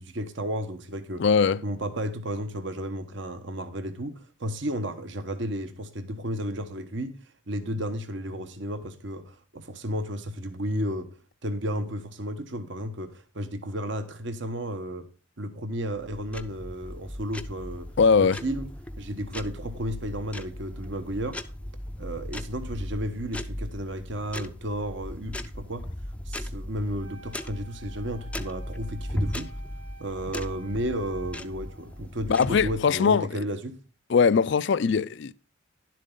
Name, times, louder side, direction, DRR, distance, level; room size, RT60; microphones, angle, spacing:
voice 1, 0.0-1.2 1.6-7.2 7.5-11.1 11.4-15.1 15.4-17.9 18.2-18.7 19.0-21.4 22.0-25.8 26.3-29.5 30.0-33.8, equal, 60° right, 1.1 m, -33 dB
voice 2, 1.2-1.6 18.0-18.4 32.3-33.3 34.1-35.3, left 5 dB, 55° left, 0.4 m, -21 dB
sound 1, 15.8-32.8, left 1 dB, 5° left, 0.5 m, -37 dB
Wind instrument woodwind instrument, 27.0-32.1, right 3 dB, 85° right, 2.3 m, -51 dB
11.0 x 7.5 x 3.7 m
head